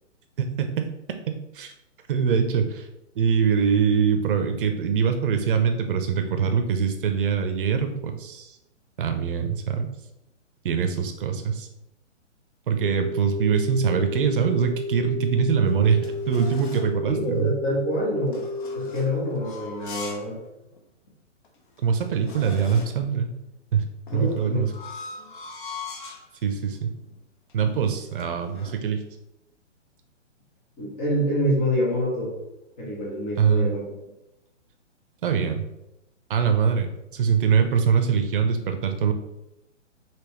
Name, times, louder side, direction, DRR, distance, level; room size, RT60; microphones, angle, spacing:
voice 1, 2.1-2.9 3.2-8.5 9.0-9.9 10.6-11.7 12.7-17.5 21.8-23.3 23.7-23.8 24.1-24.7 26.4-26.9 27.5-29.0 33.4-33.7 35.2-35.6 36.3-39.1, right 7 dB, 45° right, 7 dB, 0.7 m, -23 dB
sound 1, 12.8-18.9, left 2 dB, 85° left, 1.5 m, -32 dB
sound 2, 15.3-17.0 18.3-20.3 20.7-20.8 21.4-21.5 21.7-23.1 24.1-26.3 27.0-27.2 27.5-28.8, left 4 dB, 45° left, 0.7 m, -41 dB
voice 2, 17.1-18.4 18.7-20.4 24.1-24.6 30.8-32.4 32.8-33.9, equal, 10° left, -3 dB, 0.4 m, -26 dB
5.1 x 3.0 x 3.0 m, 0.89 s
hypercardioid pair, 135°, 37 cm